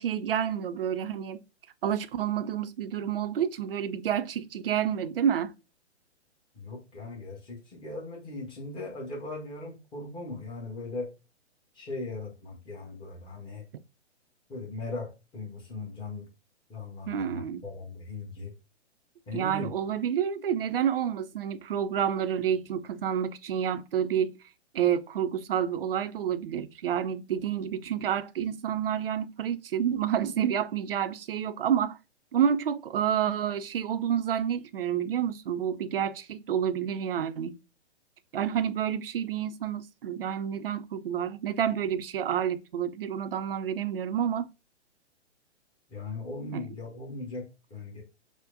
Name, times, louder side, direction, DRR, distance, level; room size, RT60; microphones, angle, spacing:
voice 1, 0.0-1.4 1.8-5.5 17.1-17.6 19.3-24.4 24.7-32.0 32.3-37.6 38.3-44.5 46.5-46.7, right 9 dB, 55° right, 0.5 m, -29 dB
voice 2, 6.5-11.1 11.7-13.6 14.5-16.3 16.7-18.5 19.3-19.7 45.9-47.4 47.7-48.0, left 2 dB, 15° left, 1.1 m, -38 dB
6.2 x 2.1 x 2.5 m
figure-of-eight pair, 120°, 34 cm